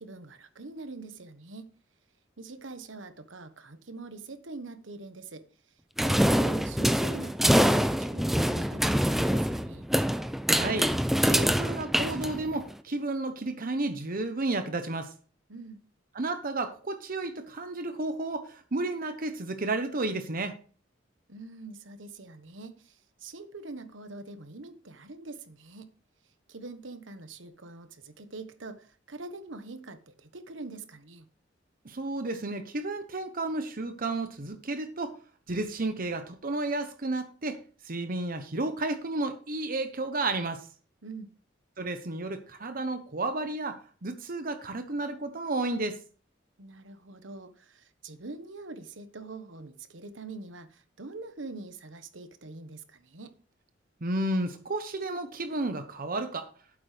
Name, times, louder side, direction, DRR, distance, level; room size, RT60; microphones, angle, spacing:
voice 1, 0.0-1.7 2.4-5.4 6.0-9.9 15.5-15.8 21.3-25.9 26.5-31.3 41.0-41.3 46.6-53.3, right 3 dB, 90° right, 1.3 m, -44 dB
sound 1, 6.0-12.7, equal, ahead, 0.6 m, -25 dB
voice 2, 10.5-10.9 11.2-15.1 16.1-20.5 31.8-35.2 35.5-40.7 41.8-46.0 54.0-56.5, right 2 dB, 50° right, 1.0 m, -32 dB
12.0 x 8.6 x 3.4 m
head